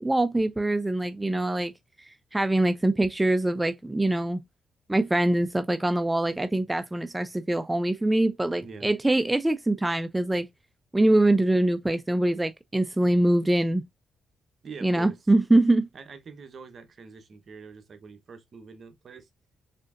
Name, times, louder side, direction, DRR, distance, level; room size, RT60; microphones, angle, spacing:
voice 1, 0.0-1.7 2.1-4.4 4.9-10.5 10.9-13.8 14.8-15.9, right 1 dB, 15° right, 0.3 m, -24 dB
voice 2, 8.6-8.9 14.6-15.2 15.9-19.3, right 5 dB, 55° right, 1.0 m, -44 dB
4.2 x 3.5 x 2.5 m
cardioid pair, 75°, 0 cm